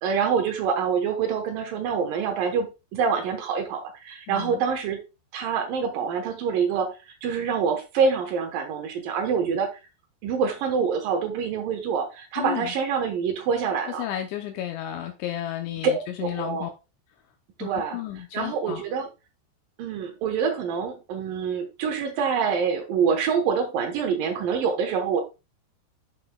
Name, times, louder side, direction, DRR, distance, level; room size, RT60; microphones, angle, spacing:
voice 1, 0.0-5.0 5.3-7.0 7.2-9.7 10.2-14.0 15.8-15.9 16.2-16.7 17.6-18.0 18.3-19.1 19.8-25.2, right 6 dB, 80° right, 4 dB, 2.0 m, -26 dB
voice 2, 4.3-4.6 12.4-12.7 14.0-16.7 17.6-18.8, left 11 dB, 80° left, 4 dB, 3.0 m, -32 dB
11.5 x 5.5 x 2.2 m, 0.27 s
omnidirectional pair, 5.4 m